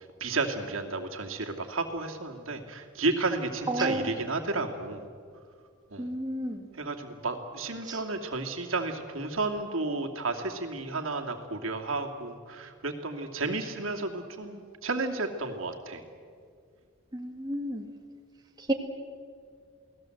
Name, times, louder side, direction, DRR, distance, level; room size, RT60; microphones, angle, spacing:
voice 1, 0.2-5.0 5.9-6.1 6.8-16.0, right 3 dB, 75° right, 3 dB, 2.6 m, -32 dB
voice 2, 3.7-4.1 6.0-6.6 7.9-8.0 17.1-17.8 18.7-18.8, right 1 dB, 20° right, 1 dB, 1.9 m, -31 dB
29.0 x 19.0 x 8.0 m, 2.2 s
head